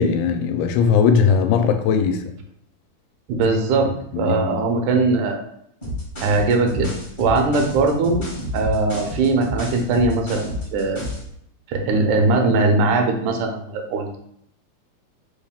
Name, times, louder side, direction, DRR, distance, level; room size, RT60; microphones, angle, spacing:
voice 1, 0.0-2.2 4.1-4.6, left 6 dB, 90° left, 6 dB, 2.0 m, -18 dB
voice 2, 3.3-3.9 4.2-5.4 6.2-6.9 7.2-8.2 8.5-11.0 11.7-14.2, right 3 dB, 85° right, 3 dB, 2.1 m, -20 dB
sound 1, 5.8-11.3, left 1 dB, 55° left, 0.5 m, -30 dB
4.9 x 2.3 x 3.5 m, 0.71 s
omnidirectional pair, 3.4 m